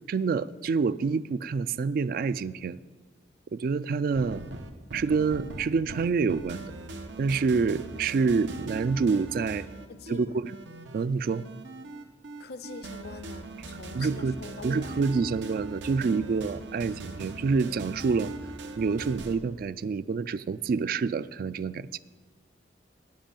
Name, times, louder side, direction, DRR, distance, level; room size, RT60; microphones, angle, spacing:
voice 1, 0.1-2.8 3.5-4.4 4.9-6.7 7.2-9.7 10.1-10.5 10.9-11.5 13.9-14.4 14.6-18.3 18.8-22.0, right 4 dB, 50° right, 16 dB, 0.3 m, -27 dB
sound 1, 4.1-19.4, right 2 dB, 90° right, 0.9 m, -40 dB
voice 2, 8.1-8.7 9.9-10.5 12.4-15.0, left 4 dB, 60° left, 13 dB, 0.6 m, -44 dB
9.1 x 7.6 x 8.8 m, 1.4 s
head